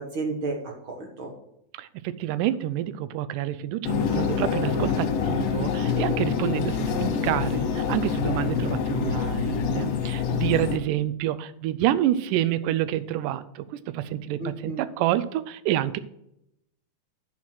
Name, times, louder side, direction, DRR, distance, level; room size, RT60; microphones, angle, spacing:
voice 1, 0.0-1.3 5.2-5.3 7.0-7.3 14.4-14.9, right 3 dB, 55° right, 1 dB, 1.6 m, -33 dB
voice 2, 1.7-16.0, right 13 dB, 85° right, 14 dB, 2.2 m, -28 dB
sound 1, 3.8-10.8, left 7 dB, 85° left, 2.8 m, -26 dB
10.5 x 4.4 x 6.1 m, 0.80 s
omnidirectional pair, 3.8 m